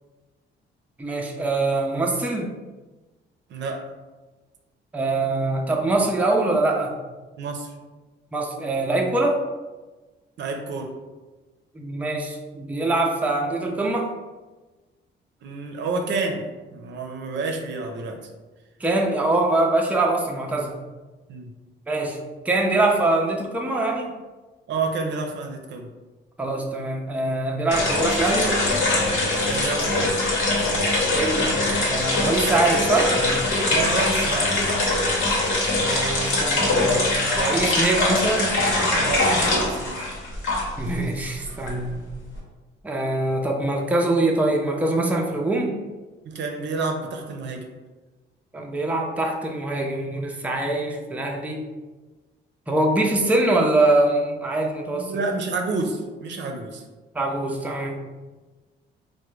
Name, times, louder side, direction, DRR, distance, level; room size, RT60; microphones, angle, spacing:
voice 1, 1.0-2.5 4.9-6.9 8.3-9.4 11.7-14.1 18.8-20.8 21.9-22.2 22.4-24.1 26.4-28.5 31.1-31.5 31.8-33.6 35.8-38.5 38.8-39.0 40.8-41.9 42.8-45.8 48.5-51.6 52.7-55.1 57.1-58.0, right 2 dB, 5° right, 1 dB, 0.4 m, -23 dB
voice 2, 3.5-3.8 7.4-7.7 10.4-10.9 15.4-18.2 21.3-21.5 24.7-25.9 29.5-30.2 33.7-34.7 39.0-40.0 46.2-47.7 54.9-56.8, right 3 dB, 65° right, 3 dB, 0.5 m, -29 dB
sound 1, 27.7-40.9 41.2-42.4, left 2 dB, 80° left, 1.0 m, -22 dB
3.5 x 2.1 x 3.1 m, 1.2 s
cardioid pair, 90°, 20 cm